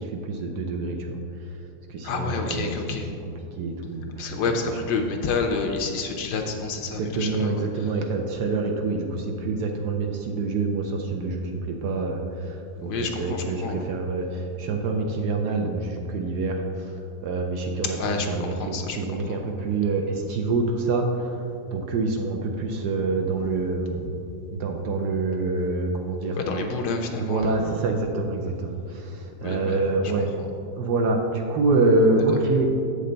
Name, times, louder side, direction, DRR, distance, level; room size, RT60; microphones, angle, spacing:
voice 1, 0.0-1.6 1.9-2.7 3.5-4.3 7.0-12.9 13.2-24.2 24.5-26.7 27.2-30.3 30.7-32.7, right 3 dB, 70° right, 3 dB, 1.1 m, -26 dB
voice 2, 2.0-3.1 4.2-7.9 12.8-13.9 17.9-19.4 26.3-27.7 29.4-30.1, left 4 dB, 70° left, 3 dB, 1.1 m, -29 dB
7.8 x 6.6 x 3.9 m, 2.6 s
omnidirectional pair, 2.1 m